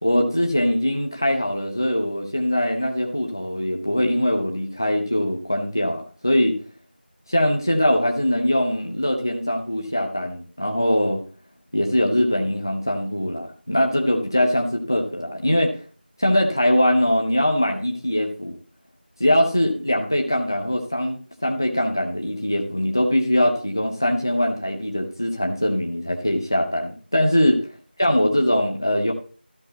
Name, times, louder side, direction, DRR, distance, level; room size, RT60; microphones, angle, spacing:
voice 1, 0.0-6.6 7.3-11.2 11.7-15.8 16.2-18.6 19.2-27.6 28.0-29.1, left 1 dB, 20° left, 2 dB, 0.8 m, -22 dB
13.0 x 6.1 x 4.0 m, 0.40 s
figure-of-eight pair, 175°, 6 cm